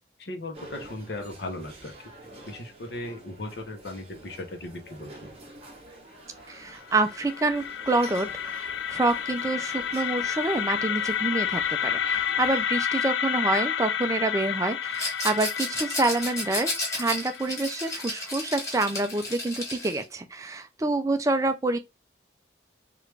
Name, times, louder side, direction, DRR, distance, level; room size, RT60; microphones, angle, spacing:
voice 1, 0.2-2.1 2.4-5.3 12.1-12.2 20.9-21.0, left 2 dB, 65° left, 0.7 m, -38 dB
sound 1, 0.5-12.7, right 1 dB, 35° right, 0.9 m, -48 dB
voice 2, 6.5-21.8, right 2 dB, 15° right, 0.4 m, -27 dB
sound 2, 6.7-18.6, left 8 dB, 80° left, 0.4 m, -30 dB
Rattle, 14.9-20.0, left 2 dB, 15° left, 1.1 m, -33 dB
3.1 x 2.4 x 3.2 m
head